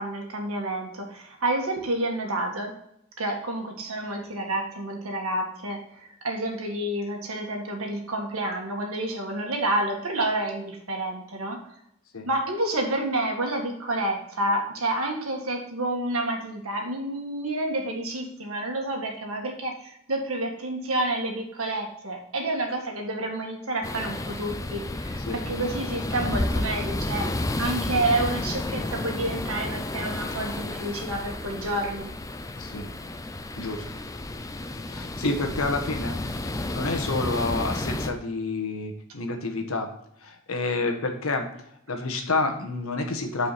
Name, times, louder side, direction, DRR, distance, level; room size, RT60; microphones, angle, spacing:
voice 1, 0.0-2.7 3.2-11.6 12.3-27.3 27.6-32.1, right 1 dB, 75° right, 2 dB, 1.8 m, -29 dB
sound 1, 23.8-38.1, left 2 dB, 15° left, 0.4 m, -31 dB
voice 2, 32.6-32.9 33.5-33.8 34.9-36.2 36.4-39.9 40.2-41.5 41.9-43.5, left 3 dB, 75° left, 4 dB, 1.3 m, -29 dB
9.2 x 4.9 x 4.2 m, 0.75 s
head